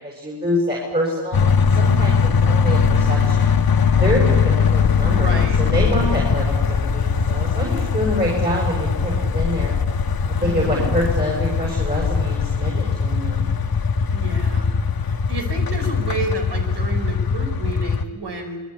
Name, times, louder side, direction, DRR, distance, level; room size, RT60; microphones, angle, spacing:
voice 1, 0.0-2.1 2.4-3.5 3.9-9.8 10.4-13.5, equal, 25° right, -2 dB, 7.1 m, -25 dB
sound 1, 1.3-18.0, left 5 dB, 60° left, 1.4 m, -20 dB
voice 2, 5.0-5.6 10.4-10.8 14.1-14.7 15.0-18.6, right 2 dB, 75° right, 3 dB, 5.3 m, -30 dB
26.0 x 21.5 x 8.5 m, 1.3 s
wide cardioid pair, 95°, 40 cm